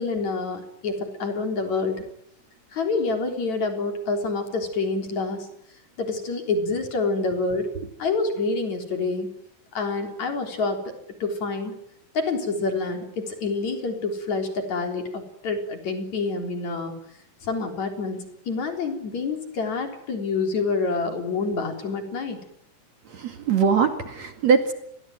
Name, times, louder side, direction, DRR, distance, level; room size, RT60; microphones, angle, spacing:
voice 1, 0.0-2.0 2.7-5.5 6.0-7.7 8.0-9.3 9.7-10.8 11.2-11.7 12.1-16.9 17.4-22.4, left 3 dB, 50° left, 4.9 m, -27 dB
voice 2, 23.1-24.7, right 6 dB, 50° right, 3.2 m, -22 dB
29.0 x 22.0 x 9.3 m
omnidirectional pair, 4.2 m